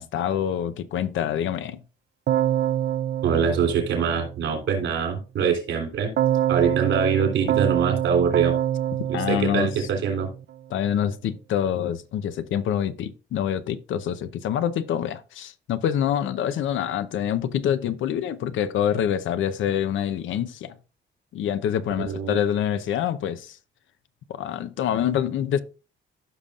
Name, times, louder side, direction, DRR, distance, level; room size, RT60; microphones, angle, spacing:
voice 1, 0.0-1.8 9.1-9.9 10.7-20.7 21.3-23.6 24.3-25.6, left 9 dB, 75° left, 0.7 m, -26 dB
Keyboard (musical), 2.3-4.6 6.2-10.4, right 11 dB, 60° right, 0.5 m, -26 dB
voice 2, 3.2-6.1 6.5-8.5 9.1-10.3 22.0-22.4, right 6 dB, 75° right, 3.5 m, -24 dB
15.5 x 5.5 x 2.5 m
cardioid pair, 90°, 20 cm